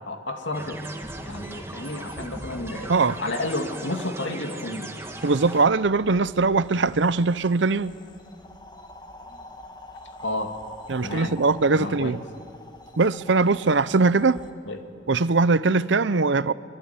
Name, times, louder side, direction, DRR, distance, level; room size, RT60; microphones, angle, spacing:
voice 1, 0.1-0.8 1.3-2.9 3.2-4.9 10.2-10.6 11.0-11.3 11.8-12.2 14.6-14.8, left 2 dB, 75° left, 2.4 m, -31 dB
sound 1, 0.5-5.6, right 1 dB, 15° right, 1.8 m, -38 dB
sound 2, 5.0-14.5, left 2 dB, 20° left, 1.6 m, -46 dB
voice 2, 5.2-8.0 10.9-12.2 13.0-14.4 15.1-16.5, right 3 dB, 75° right, 0.7 m, -21 dB
24.0 x 23.5 x 9.6 m
head